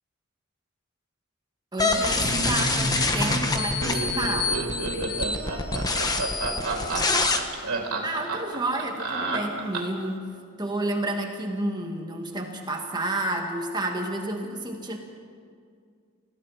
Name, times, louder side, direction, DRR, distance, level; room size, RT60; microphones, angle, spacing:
voice 1, 1.7-4.6 7.7-15.0, right 1 dB, 20° right, 2 dB, 2.0 m, -30 dB
sound 1, 1.8-7.4, left 3 dB, 15° left, 1.3 m, -26 dB
Laughter, 2.2-10.1, right 2 dB, 85° right, 3.6 m, -30 dB
voice 2, 4.9-6.9, left 1 dB, 70° left, 0 dB, 6.7 m, -45 dB
30.0 x 16.0 x 5.8 m, 2.2 s
head